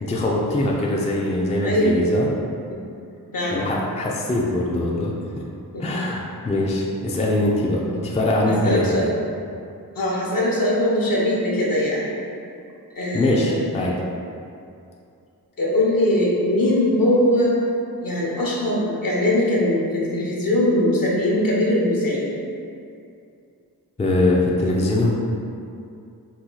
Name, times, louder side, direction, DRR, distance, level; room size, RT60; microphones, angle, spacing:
voice 1, 0.0-2.3 3.5-5.1 5.8-8.8 13.1-13.9 24.0-25.1, left 1 dB, 20° left, -3 dB, 0.4 m, -22 dB
voice 2, 1.6-2.0 2.7-2.8 3.3-3.7 5.7-6.0 8.6-9.1 9.9-12.2 13.0-13.7 15.6-17.5 18.0-22.3, left 1 dB, 60° left, -5 dB, 0.9 m, -21 dB
2.8 x 2.3 x 3.8 m, 2.5 s
cardioid pair, 50°, 39 cm